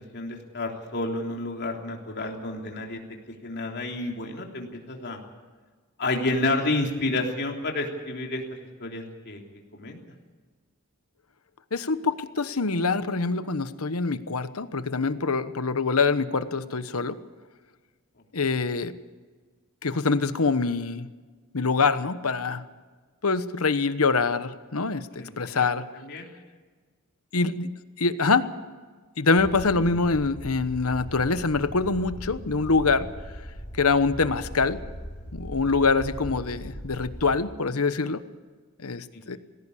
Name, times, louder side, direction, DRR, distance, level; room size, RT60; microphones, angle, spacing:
voice 1, 0.0-3.0 3.4-5.2 6.0-8.4 8.8-9.4 9.7-10.0 25.2-25.7 25.9-26.3, left 2 dB, 50° left, 1 dB, 3.3 m, -30 dB
voice 2, 11.7-17.2 18.3-18.9 19.8-21.1 21.5-22.6 23.2-25.8 27.3-27.7 28.0-28.5 29.2-33.1 33.8-34.8 35.3-38.2 38.8-39.4, left 4 dB, 75° left, 12 dB, 1.1 m, -25 dB
sound 1, 29.4-37.4, equal, 35° left, 4.3 m, -40 dB
20.0 x 16.5 x 8.5 m, 1.4 s
head